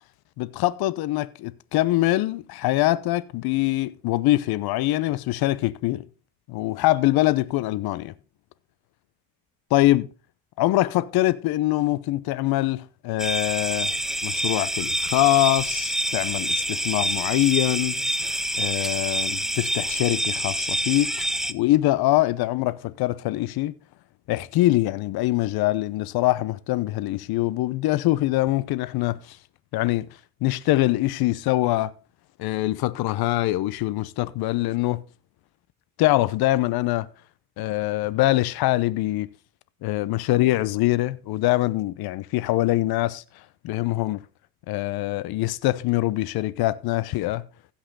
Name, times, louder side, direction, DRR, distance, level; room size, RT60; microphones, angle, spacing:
voice 1, 0.4-6.0 6.5-8.1 9.7-10.1 10.6-13.9 14.2-18.0 18.6-21.1 21.5-23.7 24.3-29.2 29.7-30.1 30.4-31.9 32.4-35.0 36.0-37.1 37.6-39.3 39.8-43.2 43.6-44.2 44.7-47.4, left 16 dB, 55° left, 0.9 m, -23 dB
sound 1, 13.2-21.5, right 1 dB, ahead, 0.5 m, -27 dB
15.5 x 5.8 x 4.0 m
supercardioid pair, 90°, 43 cm